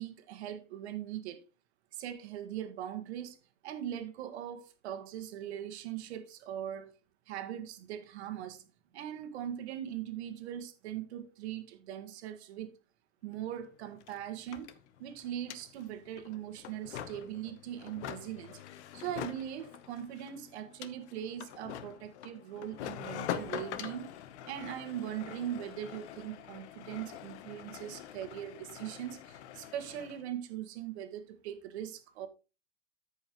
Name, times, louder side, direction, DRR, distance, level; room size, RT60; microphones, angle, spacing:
voice 1, 0.0-1.4 1.9-3.4 3.6-7.0 7.3-8.7 8.9-12.7 13.2-14.7 15.0-18.6 18.9-24.1 24.4-32.3, right 10 dB, 65° right, 1.6 m, -40 dB
sound 1, 13.3-13.4 13.6-30.2, left 10 dB, 65° left, 1.0 m, -45 dB
13.5 x 5.5 x 3.0 m
supercardioid pair, 155°, 36 cm